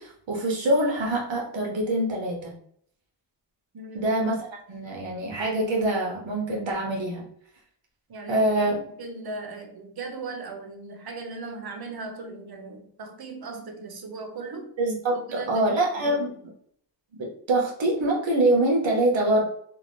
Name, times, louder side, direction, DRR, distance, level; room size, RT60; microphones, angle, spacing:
voice 1, 0.0-2.5 3.9-7.3 8.3-8.7 14.8-16.3 17.5-19.4, right 1 dB, 75° right, -1 dB, 1.1 m, -24 dB
voice 2, 3.7-4.1 8.1-14.7 15.1-15.6 16.0-16.2, right 3 dB, 55° right, 4 dB, 0.8 m, -38 dB
2.9 x 2.5 x 3.1 m, 0.65 s
cardioid pair, 55°, 45 cm